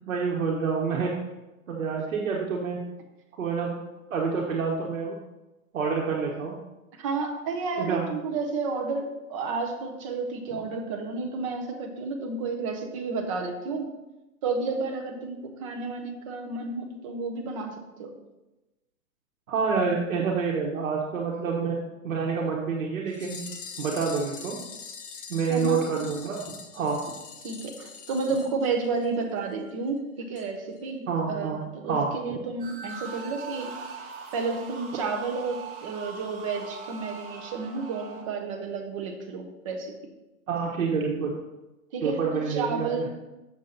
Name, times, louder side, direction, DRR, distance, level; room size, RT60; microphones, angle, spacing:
voice 1, 0.1-1.1 1.7-2.8 3.4-3.8 4.1-5.1 5.7-6.5 7.8-8.0 19.5-21.8 22.0-23.4 23.8-24.6 25.3-26.4 26.7-27.0 31.1-31.6 31.9-32.4 40.5-41.3 42.0-43.1, right 5 dB, 65° right, -2 dB, 1.4 m, -27 dB
voice 2, 7.0-13.9 14.4-18.1 25.5-25.8 27.4-33.7 34.0-39.9 41.9-42.2 42.5-43.1, right 4 dB, 25° right, 2 dB, 0.9 m, -31 dB
sound 1, 23.1-29.2 29.5-29.6 29.9-30.0 30.4-30.5 30.8-30.9, left 6 dB, 40° left, 1.0 m, -43 dB
sound 2, 32.6-38.2, right 4 dB, 40° right, 1.9 m, -41 dB
7.3 x 6.7 x 4.1 m, 1.0 s
hypercardioid pair, 165°, 42 cm